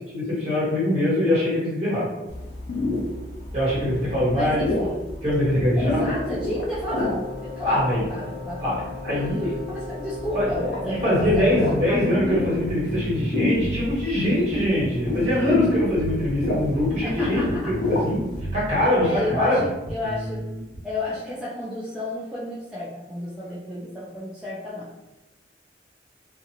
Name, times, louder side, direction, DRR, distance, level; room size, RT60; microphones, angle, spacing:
voice 1, 0.1-2.0 3.5-4.6 5.2-6.0 7.6-8.0 8.6-9.5 10.3-10.5 10.8-18.2 18.5-19.6, left 1 dB, 40° right, -8 dB, 1.4 m, -23 dB
sound 1, 2.3-18.4, left 2 dB, 80° left, 0.6 m, -29 dB
voice 2, 4.3-5.0 5.8-8.6 9.1-11.5 11.9-12.3 17.0-17.7 19.0-20.4 20.8-24.9, left 2 dB, 5° right, -9 dB, 0.4 m, -32 dB
Wind instrument woodwind instrument, 6.9-12.6, left 4 dB, 20° left, 0.8 m, -38 dB
sound 2, 11.2-20.8, right 1 dB, 90° right, 0.5 m, -34 dB
2.6 x 2.5 x 2.8 m, 1.0 s
head